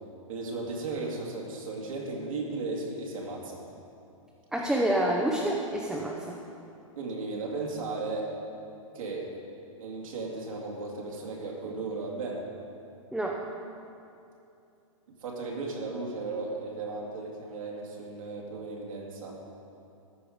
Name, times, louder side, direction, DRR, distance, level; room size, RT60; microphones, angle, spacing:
voice 1, 0.3-3.6 7.0-8.3 8.9-9.3 9.8-12.4 15.2-19.3, right 3 dB, 75° right, -2 dB, 2.2 m, -35 dB
voice 2, 4.5-6.4 13.1-13.4, right 1 dB, ahead, -2 dB, 0.6 m, -28 dB
13.5 x 4.7 x 5.1 m, 2.7 s
hypercardioid pair, 130°, 17 cm